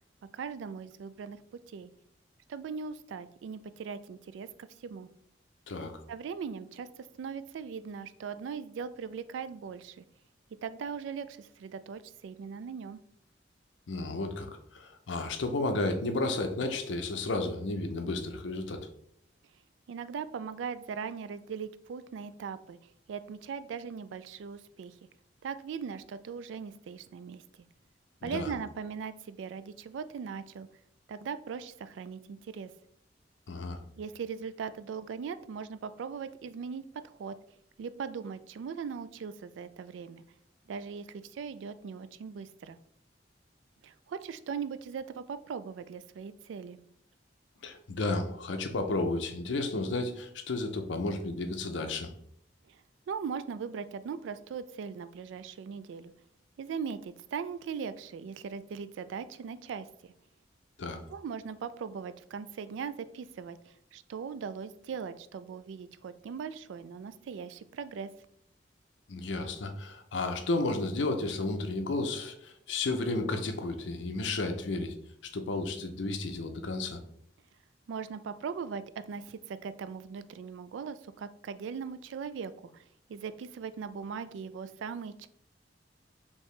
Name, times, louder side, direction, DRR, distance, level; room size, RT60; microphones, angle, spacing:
voice 1, 0.3-1.4 1.7-1.9 2.5-5.1 6.1-10.0 10.6-13.0 19.9-22.8 23.1-24.9 25.4-27.7 28.2-30.7 31.1-32.7 34.0-37.4 37.8-40.2 40.7-42.8 43.8-46.8 52.7-56.1 56.6-60.1 61.1-68.1 77.9-85.3, right 6 dB, 80° right, 13 dB, 0.3 m, -39 dB
voice 2, 13.9-18.9 28.2-28.5 33.5-33.8 47.6-52.1 60.8-61.0 69.1-75.0 75.2-77.0, left 2 dB, 75° left, 6 dB, 0.6 m, -32 dB
4.6 x 2.9 x 3.2 m, 0.68 s
head